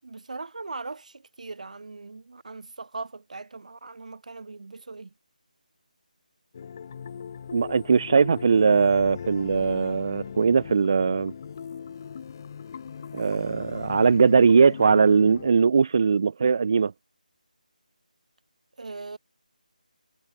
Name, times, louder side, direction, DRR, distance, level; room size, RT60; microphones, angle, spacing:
voice 1, 0.0-5.1 18.8-19.2, right 3 dB, 55° right, 6.3 m, -39 dB
sound 1, 6.5-15.5, left 7 dB, 25° left, 3.1 m, -39 dB
voice 2, 7.5-11.3 13.1-16.9, right 5 dB, 30° right, 1.1 m, -20 dB
figure-of-eight pair, 175°, 5 cm